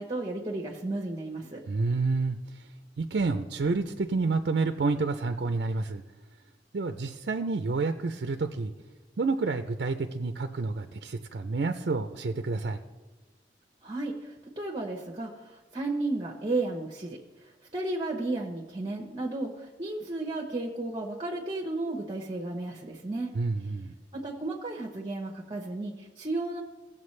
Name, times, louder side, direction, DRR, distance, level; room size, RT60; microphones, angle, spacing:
voice 1, 0.0-1.6 13.8-23.3 24.1-26.6, right 2 dB, 25° right, 0 dB, 0.9 m, -33 dB
voice 2, 1.7-2.6 3.0-6.0 6.7-8.7 9.2-12.8 23.3-24.0, right 3 dB, 65° right, 7 dB, 0.5 m, -29 dB
17.5 x 7.3 x 3.2 m, 1.3 s
head